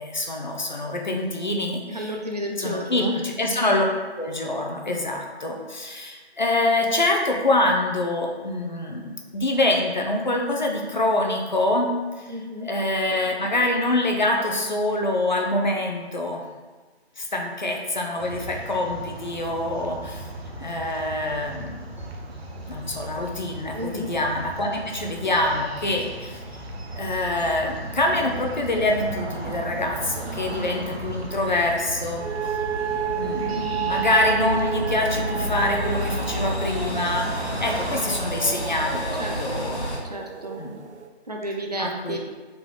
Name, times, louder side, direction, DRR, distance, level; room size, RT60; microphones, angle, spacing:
voice 1, 0.0-2.1 2.6-3.8 4.2-11.9 12.2-12.3 12.6-16.4 17.2-20.3 20.6-21.8 22.7-26.6 26.9-32.2 33.1-39.9 40.6-40.7 41.8-42.2, left 2 dB, 45° left, 1 dB, 0.5 m, -25 dB
voice 2, 1.9-3.2 12.3-12.7 23.7-24.1 39.2-39.7 40.1-40.6 41.3-42.2, equal, 40° right, 1 dB, 0.5 m, -32 dB
sound 1, 18.2-38.0, right 1 dB, 65° right, 0.8 m, -35 dB
sound 2, 25.8-40.0, equal, 85° left, 1.3 m, -35 dB
sound 3, 32.2-41.1, right 8 dB, 85° right, 0.5 m, -31 dB
3.8 x 3.8 x 3.0 m, 1.3 s
figure-of-eight pair, 160°, 33 cm